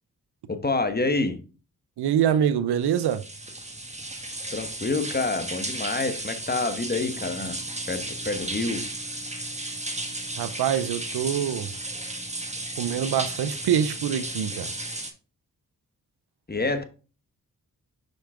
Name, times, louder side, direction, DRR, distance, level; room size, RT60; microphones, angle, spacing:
voice 1, 0.5-1.4 4.5-7.6 7.9-8.9 16.5-16.8, left 3 dB, 25° left, 1.2 m, -27 dB
voice 2, 2.0-3.2 10.4-11.7 12.8-14.7, right 9 dB, 85° right, 0.6 m, -25 dB
sound 1, 2.8-15.1, right 1 dB, 15° right, 1.5 m, -34 dB
5.5 x 5.4 x 3.6 m
cardioid pair, 45°, 38 cm